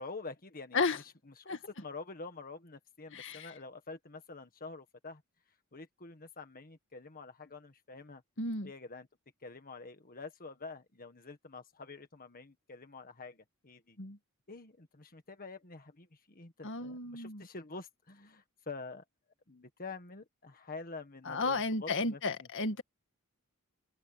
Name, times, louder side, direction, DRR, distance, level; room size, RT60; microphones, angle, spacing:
voice 1, 0.0-5.2 5.7-8.2 8.6-9.1 9.4-14.0 14.5-19.0 19.5-22.5, left 3 dB, 40° left, 1.7 m, -47 dB
voice 2, 3.1-3.5 8.4-8.7 14.0-14.2 16.6-17.4 21.3-22.8, left 3 dB, 60° left, 1.9 m, -33 dB
head